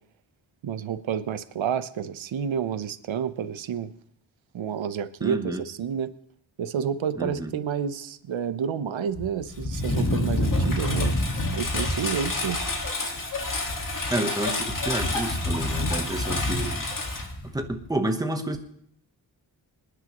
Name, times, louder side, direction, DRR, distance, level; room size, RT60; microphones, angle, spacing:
voice 1, 0.6-3.9 4.5-6.1 6.6-11.1 11.5-12.6, right 8 dB, 80° right, 13 dB, 0.8 m, -29 dB
voice 2, 5.2-5.6 7.2-7.5 14.1-16.8 17.5-18.6, right 1 dB, 10° right, 5 dB, 1.0 m, -30 dB
Engine, 9.2-17.9, left 2 dB, 45° left, 1.9 m, -27 dB
26.5 x 10.0 x 3.0 m, 0.65 s
wide cardioid pair, 165°, 45 cm